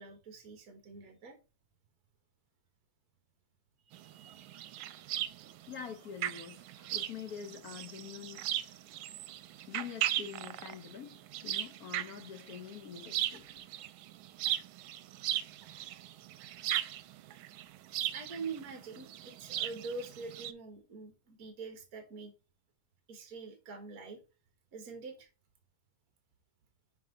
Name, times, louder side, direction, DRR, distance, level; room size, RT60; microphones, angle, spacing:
voice 1, 0.0-1.4 3.8-4.9 16.6-17.2 17.5-17.7 18.1-22.3 23.1-24.2 24.7-25.3, right 4 dB, 50° right, 1.5 m, -45 dB
sound 1, 3.9-20.5, right 12 dB, 85° right, 1.4 m, -38 dB
voice 2, 5.7-8.6 9.6-13.6, left 8 dB, 65° left, 0.9 m, -45 dB
6.0 x 4.9 x 3.9 m
omnidirectional pair, 2.2 m